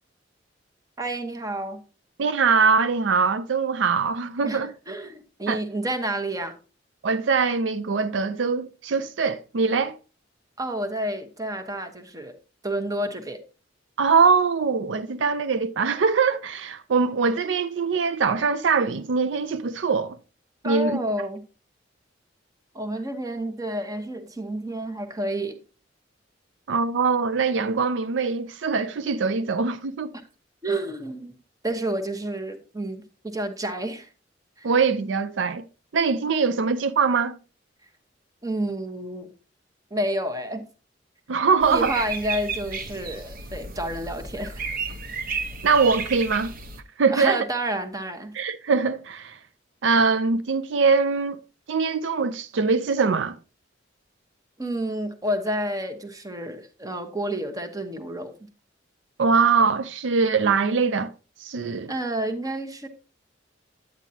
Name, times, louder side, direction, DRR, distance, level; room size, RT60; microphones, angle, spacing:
voice 1, 1.0-1.8 4.4-6.5 10.6-12.4 12.6-13.4 20.6-21.4 22.7-25.6 30.6-31.4 31.6-34.1 34.6-34.7 38.4-39.3 39.9-40.6 41.7-44.7 47.1-48.3 54.6-58.3 61.9-62.9, right 1 dB, 20° right, 1.0 m, -30 dB
voice 2, 2.2-4.7 5.5-5.6 7.0-10.0 14.0-20.2 20.6-21.0 26.7-30.1 34.6-35.6 35.9-37.4 41.3-41.9 45.6-46.5 47.0-47.5 48.3-49.4 49.8-51.4 51.7-53.4 59.2-61.1 61.4-61.9, right 5 dB, 85° right, 0.5 m, -22 dB
sound 1, 41.6-46.8, right 4 dB, 50° right, 0.9 m, -33 dB
9.4 x 9.0 x 2.8 m
head